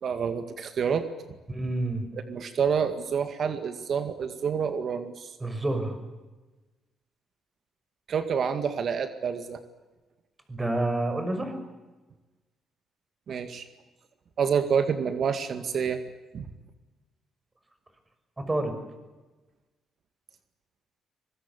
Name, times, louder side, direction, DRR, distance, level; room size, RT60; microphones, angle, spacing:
voice 1, 0.0-1.1 2.1-5.3 8.1-9.6 13.3-13.7 14.4-16.0 16.3-16.5, right 7 dB, 55° right, 9 dB, 2.0 m, -28 dB
voice 2, 1.5-2.1 5.4-6.0 10.5-11.5 18.4-18.8, right 2 dB, 20° right, 7 dB, 6.1 m, -28 dB
24.5 x 21.5 x 8.5 m, 1.2 s
cardioid pair, 90°, 0 cm